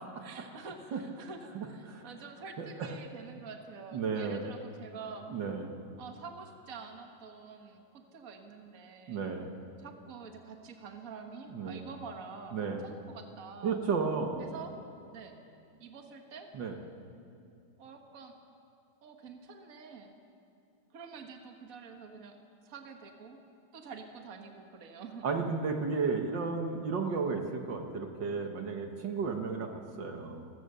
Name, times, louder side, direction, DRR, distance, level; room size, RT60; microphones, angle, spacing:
voice 1, 0.2-5.3 6.0-9.2 9.8-13.8 14.4-14.7 15.1-15.4 15.8-16.5 17.8-18.3 19.0-20.1 20.9-22.4 22.6-23.4 23.7-25.3, right 5 dB, 45° right, 4 dB, 1.8 m, -47 dB
voice 2, 1.6-2.0 2.6-3.0 3.9-4.5 5.3-5.7 9.1-9.5 11.5-11.8 12.5-12.8 13.6-14.5 16.5-16.8 25.2-30.5, right 5 dB, 65° right, 4 dB, 2.0 m, -33 dB
29.5 x 15.5 x 6.8 m, 2.6 s
omnidirectional pair, 2.2 m